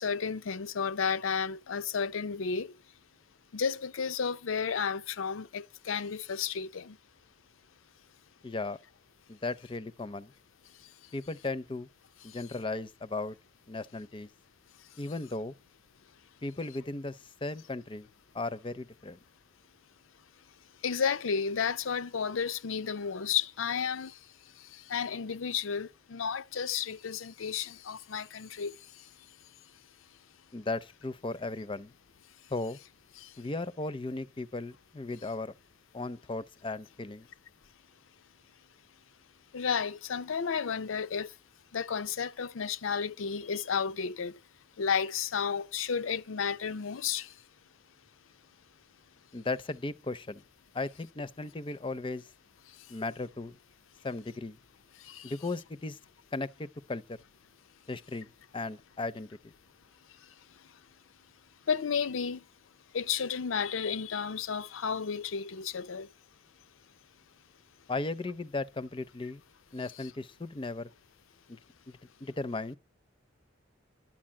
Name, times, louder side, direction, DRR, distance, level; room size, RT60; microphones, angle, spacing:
voice 1, 0.0-2.7 3.5-7.0 12.3-12.4 20.8-24.2 24.7-28.7 33.2-33.3 39.5-41.3 41.7-44.4 44.8-47.3 55.0-55.3 61.7-62.4 62.9-66.1 69.9-70.1, left 6 dB, 85° left, 0.6 m, -32 dB
voice 2, 8.4-8.8 9.3-10.3 11.1-11.9 12.2-13.4 13.7-14.3 15.0-15.5 16.4-18.1 18.3-19.2 30.5-31.9 32.5-32.8 33.4-35.5 35.9-37.3 49.3-50.4 50.7-52.2 52.9-53.6 54.0-54.6 55.2-56.0 56.3-57.2 57.9-59.5 67.9-69.4 69.7-70.9 71.5-71.6 71.9-72.8, left 2 dB, 25° left, 0.6 m, -36 dB
12.5 x 8.7 x 7.4 m
head